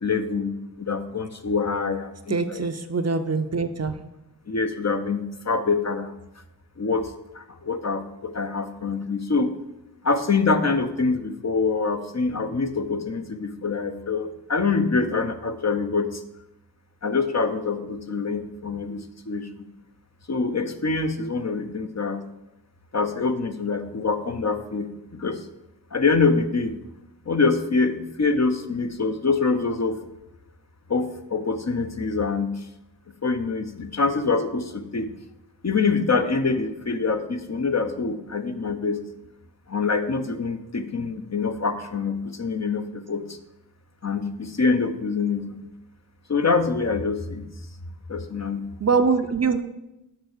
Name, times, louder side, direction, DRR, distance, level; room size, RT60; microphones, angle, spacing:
voice 1, 0.0-2.6 4.5-6.2 6.8-9.6 10.0-16.2 17.0-19.7 20.3-22.3 22.9-25.4 25.9-26.8 27.3-30.0 30.9-32.7 33.2-35.1 35.6-39.0 39.7-43.4 44.0-45.7 46.3-47.5 48.1-48.6, left 4 dB, 45° left, 8 dB, 0.7 m, -25 dB
voice 2, 2.3-4.0 48.8-49.6, right 4 dB, 40° right, 8 dB, 0.6 m, -23 dB
6.6 x 5.9 x 6.6 m, 0.92 s
wide cardioid pair, 85°, 38 cm